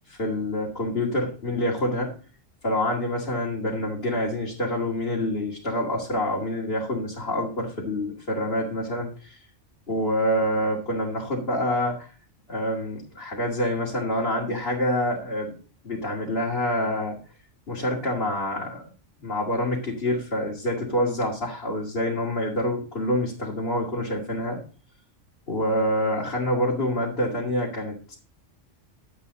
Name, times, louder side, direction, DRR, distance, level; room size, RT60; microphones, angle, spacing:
voice 1, 0.1-2.1 2.6-9.4 9.9-12.1 12.5-15.6 15.8-17.2 17.7-18.8 19.2-24.6 25.5-28.1, left 1 dB, 50° left, -4 dB, 2.6 m, -27 dB
11.5 x 9.4 x 4.0 m, 0.37 s
omnidirectional pair, 1.3 m